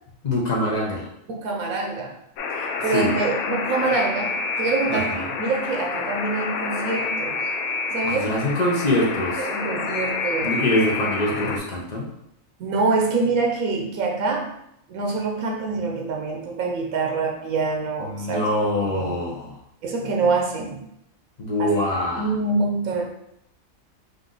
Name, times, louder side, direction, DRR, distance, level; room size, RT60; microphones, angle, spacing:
voice 1, 0.2-1.1 2.9-3.1 4.9-5.2 8.0-9.5 10.4-12.1 18.0-19.6 21.4-22.3, left 1 dB, 40° left, -2 dB, 0.6 m, -24 dB
voice 2, 1.3-2.1 2.6-4.3 4.6-7.4 7.9-8.3 9.4-10.6 12.6-14.5 14.9-18.5 18.9-19.2 19.8-20.8 21.6-21.7 22.2-23.0, right 3 dB, 85° right, 1 dB, 1.1 m, -25 dB
Alarm, 2.4-11.6, left 4 dB, 90° left, 1.0 m, -28 dB
3.9 x 2.6 x 3.7 m, 0.77 s
omnidirectional pair, 1.4 m